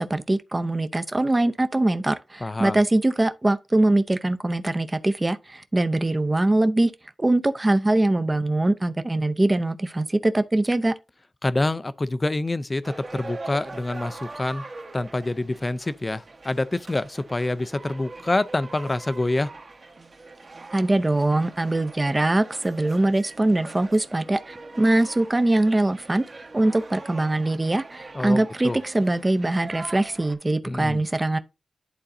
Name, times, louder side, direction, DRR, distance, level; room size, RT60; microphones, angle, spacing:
voice 1, 0.0-6.9 7.2-10.9 20.7-26.2 26.5-31.4, right 2 dB, 25° right, 0.6 m, -22 dB
voice 2, 2.4-2.8 11.4-14.6 14.9-19.5 28.1-28.8 30.6-31.0, left 2 dB, 30° left, 0.5 m, -26 dB
sound 1, 12.8-30.3, right 3 dB, 50° right, 1.2 m, -42 dB
11.0 x 3.8 x 2.7 m
cardioid pair, 70°, 0 cm